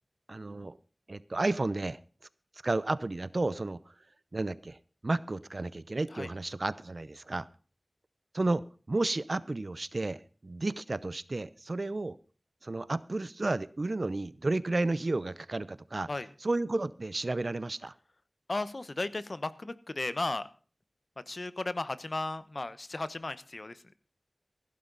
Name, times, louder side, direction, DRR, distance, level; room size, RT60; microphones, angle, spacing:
voice 1, 0.3-0.8 1.1-2.0 2.6-3.8 4.3-4.8 5.0-7.5 8.3-12.2 12.6-16.1 16.4-17.9, right 2 dB, 55° right, 17 dB, 0.7 m, -32 dB
voice 2, 18.5-20.4 21.3-24.0, left 2 dB, 50° left, 14 dB, 1.0 m, -35 dB
15.5 x 12.0 x 4.0 m, 0.39 s
wide cardioid pair, 60°, 0 cm